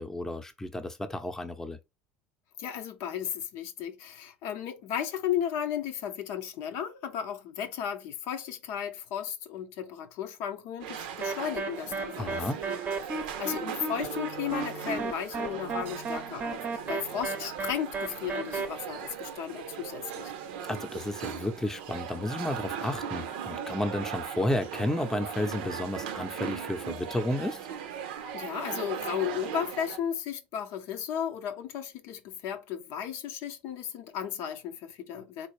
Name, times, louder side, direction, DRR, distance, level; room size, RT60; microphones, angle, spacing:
voice 1, 0.0-1.8 12.2-12.6 20.7-27.6, left 1 dB, 10° left, 0.6 m, -32 dB
voice 2, 2.6-12.5 13.4-20.3 28.3-35.5, left 9 dB, 70° left, 0.6 m, -34 dB
sound 1, 10.8-30.0, right 8 dB, 85° right, 0.6 m, -38 dB
sound 2, 11.2-18.7, right 3 dB, 30° right, 0.7 m, -34 dB
sound 3, 14.0-21.3, left 1 dB, 85° left, 1.0 m, -51 dB
3.8 x 2.6 x 3.1 m
supercardioid pair, 90°, 5 cm